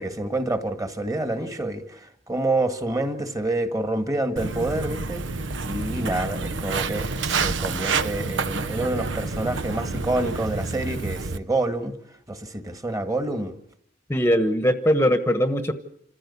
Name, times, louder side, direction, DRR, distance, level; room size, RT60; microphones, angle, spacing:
voice 1, 0.0-5.2 5.6-11.9 12.3-13.6, right 2 dB, 20° right, 1.8 m, -27 dB
Walk footsteps, 4.4-11.4, right 4 dB, 75° right, 0.9 m, -28 dB
voice 2, 14.1-15.7, equal, 15° left, 1.1 m, -21 dB
27.5 x 15.5 x 8.5 m
head